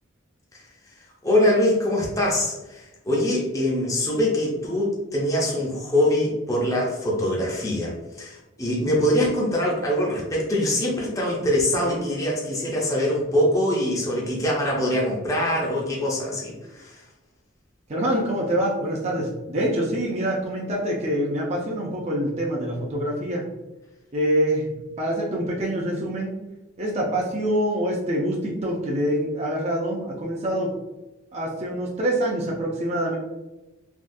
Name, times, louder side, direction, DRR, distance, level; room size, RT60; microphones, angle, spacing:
voice 1, 1.2-17.0, left 1 dB, 15° left, -4 dB, 0.5 m, -23 dB
voice 2, 17.9-23.4 24.1-24.7 25.0-26.4 26.8-30.7 31.3-33.2, right 1 dB, 35° right, -3 dB, 0.5 m, -25 dB
3.5 x 2.3 x 2.6 m, 1.0 s
head